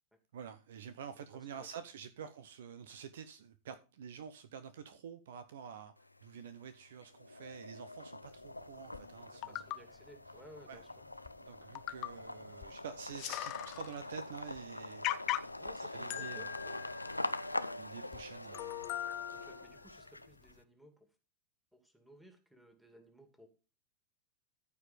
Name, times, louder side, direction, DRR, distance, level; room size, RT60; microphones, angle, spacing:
voice 1, 0.3-5.9 6.2-9.7 10.7-10.8 11.4-15.5 15.8-16.6 17.8-18.9 19.3-19.4, right 7 dB, 60° right, 0.9 m, -48 dB
voice 2, 1.2-1.7 9.2-10.9 15.6-16.9 19.3-21.1 21.7-23.5, equal, 5° right, 2.3 m, -59 dB
sound 1, 6.0-6.6 7.0-20.5, left 2 dB, 85° left, 0.5 m, -44 dB
sound 2, 8.9-9.0 9.4-9.8 10.8-10.9 11.2-11.4 11.7-12.2 12.6-12.7 13.0-14.0 14.5-14.6 15.0-15.7 16.1-17.6 18.1-18.2 18.5-19.9 20.5-20.6, left 15 dB, 40° left, 0.7 m, -40 dB
14.5 x 4.8 x 5.1 m
figure-of-eight pair, 90°, 0 cm